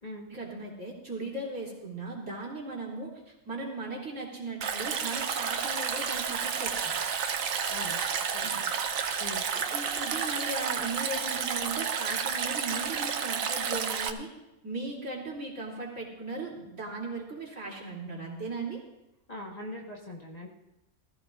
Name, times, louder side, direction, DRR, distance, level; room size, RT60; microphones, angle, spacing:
voice 1, 0.3-6.9 8.4-8.6 9.5-14.3 14.6-18.8, right 2 dB, 55° right, -5 dB, 3.2 m, -37 dB
Stream, 4.6-14.1, right 6 dB, 70° right, 1.2 m, -31 dB
voice 2, 7.7-8.0 8.3-8.5 9.2-9.4 19.3-20.5, left 1 dB, 30° left, -2 dB, 1.4 m, -41 dB
19.5 x 14.5 x 2.5 m, 0.93 s
omnidirectional pair, 1.5 m